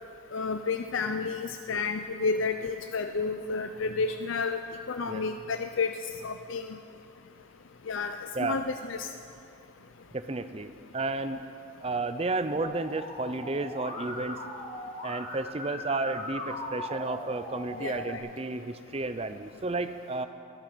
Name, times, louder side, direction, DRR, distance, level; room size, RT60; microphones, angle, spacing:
voice 1, 0.3-4.6 4.9-5.9 6.2-6.8 7.9-9.1 17.8-18.2, left 4 dB, 75° left, 7 dB, 0.5 m, -31 dB
voice 2, 10.1-11.4 11.8-14.4 15.0-20.3, right 3 dB, 30° right, 11 dB, 0.5 m, -32 dB
Musical instrument, 12.6-18.2, left 1 dB, 40° left, 2.1 m, -39 dB
22.5 x 8.8 x 6.2 m, 2.6 s
head